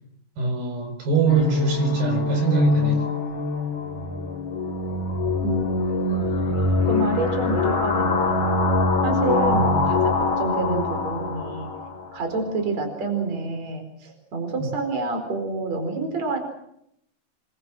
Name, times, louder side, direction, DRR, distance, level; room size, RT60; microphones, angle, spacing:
voice 1, 0.4-3.1 9.5-9.8, right 4 dB, 75° right, 4 dB, 6.3 m, -24 dB
sound 1, 1.3-12.1, left 3 dB, 40° left, 4.8 m, -23 dB
voice 2, 5.4-6.3 6.9-8.5 9.0-11.7 12.1-16.4, right 2 dB, 50° right, 5 dB, 5.6 m, -28 dB
27.0 x 23.5 x 6.1 m, 0.75 s
omnidirectional pair, 4.2 m